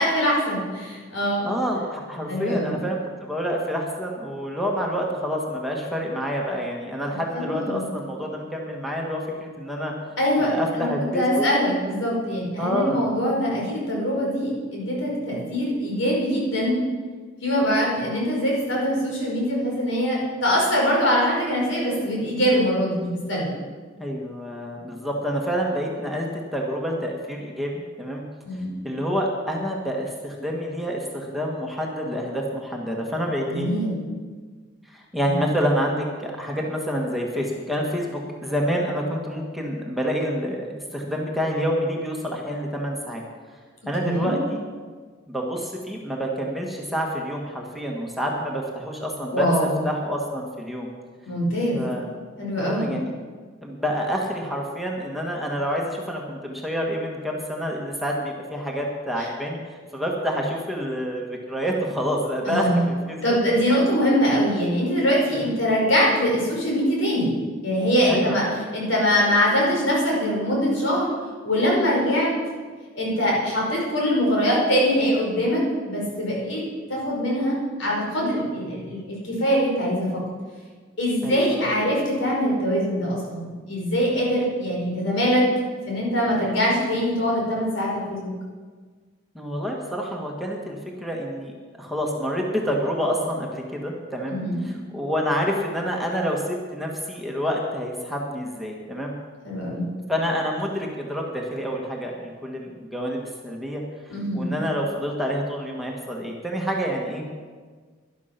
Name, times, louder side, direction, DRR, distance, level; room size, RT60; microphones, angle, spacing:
voice 1, 0.0-1.5 2.3-2.8 7.3-7.8 10.2-16.8 17.4-23.5 28.4-28.7 33.5-34.1 35.2-35.4 44.0-44.3 49.3-49.8 51.2-51.8 52.4-52.9 59.2-59.3 62.4-62.9 63.2-67.3 67.6-68.4 68.7-71.1 71.4-72.3 72.9-76.6 76.9-80.1 81.0-85.4 85.9-88.3 94.3-94.6 99.4-99.9 104.1-104.5, equal, 80° left, -3 dB, 5.1 m, -23 dB
voice 2, 1.4-9.9 10.4-11.4 12.6-13.0 24.0-28.2 28.8-33.7 34.9-43.2 43.8-44.6 45.3-49.5 49.8-50.9 51.7-52.1 52.6-53.1 53.6-63.2 65.3-65.6 68.1-68.4 81.2-81.8 89.3-91.5 91.8-99.1 100.1-107.3, equal, ahead, -1 dB, 1.6 m, -28 dB
12.0 x 11.5 x 5.9 m, 1.5 s
head